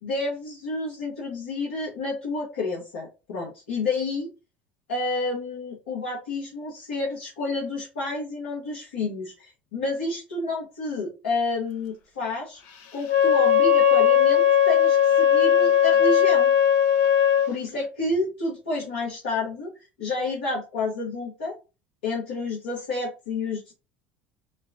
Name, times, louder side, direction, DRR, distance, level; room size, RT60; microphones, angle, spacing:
voice 1, 0.0-4.3 4.9-12.6 12.9-16.5 17.5-19.7 20.0-21.5 22.0-23.7, left 3 dB, 80° left, -5 dB, 1.4 m, -30 dB
Wind instrument woodwind instrument, 13.0-17.5, left 9 dB, 65° left, 0.8 m, -18 dB
4.0 x 2.3 x 3.5 m, 0.29 s
hypercardioid pair, 70°, 6 cm